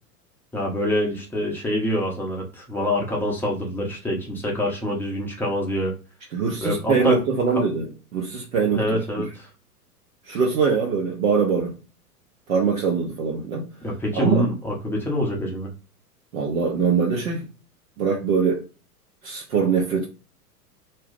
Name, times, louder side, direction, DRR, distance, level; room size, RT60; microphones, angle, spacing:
voice 1, 0.5-5.9 6.6-7.2 7.5-7.6 8.7-9.5 13.8-15.7, equal, 5° left, 0.7 m, -25 dB
voice 2, 6.3-7.9 8.1-8.8 10.3-11.8 12.5-13.6 14.1-14.5 16.3-17.5 18.0-18.6 19.2-20.1, right 5 dB, 60° right, 1.0 m, -22 dB
2.7 x 2.2 x 3.6 m
figure-of-eight pair, 95°, 46 cm